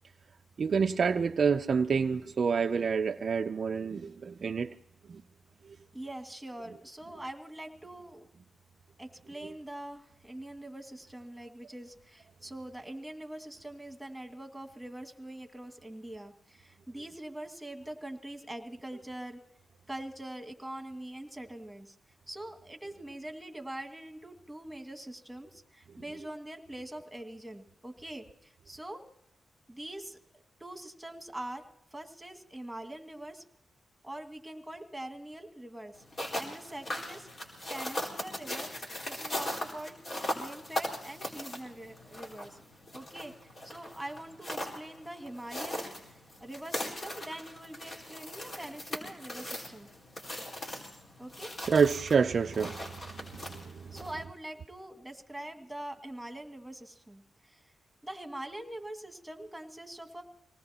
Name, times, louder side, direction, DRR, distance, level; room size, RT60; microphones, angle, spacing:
voice 1, 0.6-4.7 5.1-5.2 5.7-5.8 51.7-54.0, right 6 dB, 55° right, 0.5 m, -28 dB
voice 2, 5.9-8.3 9.0-19.4 19.9-22.0 22.3-29.0 29.7-33.4 34.0-36.0 36.4-37.3 37.7-40.0 40.3-42.6 42.9-43.3 43.6-49.9 51.2-51.6 53.9-57.6 58.0-60.2, right 1 dB, 5° right, 2.1 m, -43 dB
sound 1, 36.0-54.2, left 1 dB, 50° left, 4.6 m, -39 dB
26.0 x 19.0 x 2.9 m
cardioid pair, 80°, 0 cm